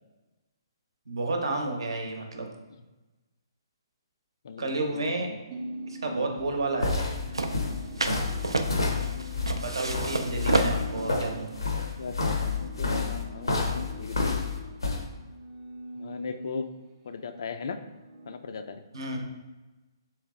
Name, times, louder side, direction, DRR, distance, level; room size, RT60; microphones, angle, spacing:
voice 1, 1.1-2.5 4.6-5.3 5.9-7.1 9.5-11.5 18.9-19.2, right 2 dB, 70° right, 3 dB, 0.8 m, -31 dB
voice 2, 4.4-5.4 6.0-6.3 8.5-9.6 11.8-14.4 16.0-16.7 17.1-17.8 18.3-18.8, left 4 dB, 60° left, 9 dB, 0.4 m, -38 dB
sound 1, 5.5-16.9 17.3-18.4, right 1 dB, 30° right, 0.5 m, -43 dB
Footsteps Interior Collection, 6.4-15.0, left 4 dB, 80° left, 0.7 m, -29 dB
sound 2, 7.3-12.7, right 2 dB, 90° right, 0.4 m, -31 dB
3.3 x 3.2 x 3.6 m, 1.2 s
figure-of-eight pair, 130°, 2 cm